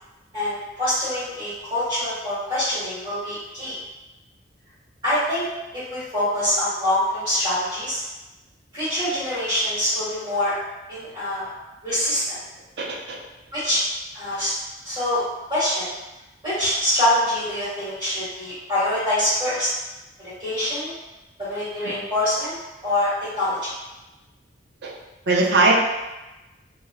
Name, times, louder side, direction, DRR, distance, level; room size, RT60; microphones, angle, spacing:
voice 1, 0.3-3.8 5.0-5.4 5.7-8.0 8.7-10.5 10.9-11.5 11.8-12.4 13.5-13.8 14.1-14.5 14.8-15.2 15.5-15.9 16.4-19.7 20.4-20.9 21.4-22.5 22.8-23.7, left 1 dB, 25° right, -12 dB, 1.2 m, -24 dB
voice 2, 12.8-13.2 21.9-22.0 24.8-24.9 25.3-25.7, right 3 dB, 65° right, -3 dB, 0.5 m, -20 dB
2.2 x 2.0 x 3.4 m, 1.1 s
head